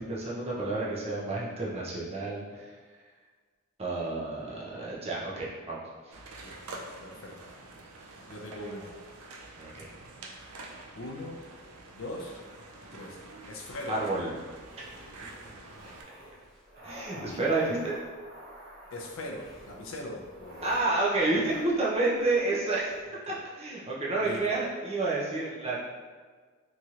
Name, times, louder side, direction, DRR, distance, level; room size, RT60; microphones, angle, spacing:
voice 1, 0.0-2.7 3.8-5.8 6.0-6.2 9.6-9.9 13.9-14.3 16.8-18.0 20.6-22.9 23.3-25.8, right 2 dB, 25° right, -5 dB, 0.5 m, -30 dB
sound 1, 6.1-16.0, right 2 dB, 85° right, 0.4 m, -47 dB
voice 2, 7.0-7.4 8.3-8.9 10.9-11.4 11.9-12.4 12.9-13.2 13.5-14.0 17.1-17.4 18.9-20.7 24.2-24.4, left 1 dB, 65° left, 0 dB, 0.5 m, -40 dB
sound 2, 14.6-23.0, equal, 45° right, 1.1 m, -49 dB
3.0 x 2.8 x 2.4 m, 1.5 s
head